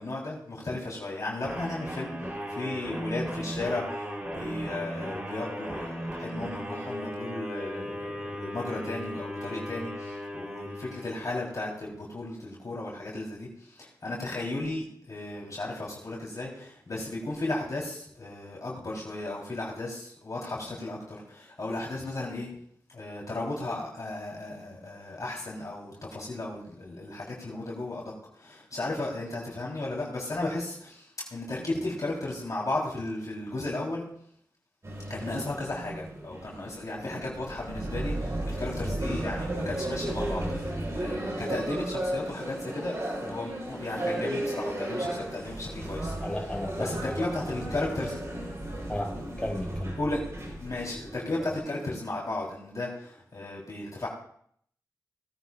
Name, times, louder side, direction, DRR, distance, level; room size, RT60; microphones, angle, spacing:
voice 1, 0.0-2.1 2.5-22.5 22.9-34.0 35.1-42.9 43.2-46.1 46.8-48.2 50.0-50.2 50.6-54.1, left 2 dB, 55° left, -4 dB, 3.2 m, -35 dB
sound 1, 1.4-11.7, equal, 20° right, 3.2 m, -36 dB
sound 2, 34.8-51.6, right 1 dB, 45° right, 3.7 m, -34 dB
voice 2, 46.2-47.1 48.9-50.0, left 1 dB, 15° left, -1 dB, 4.8 m, -34 dB
18.5 x 9.7 x 2.3 m, 0.64 s
cardioid pair, 45°, 7 cm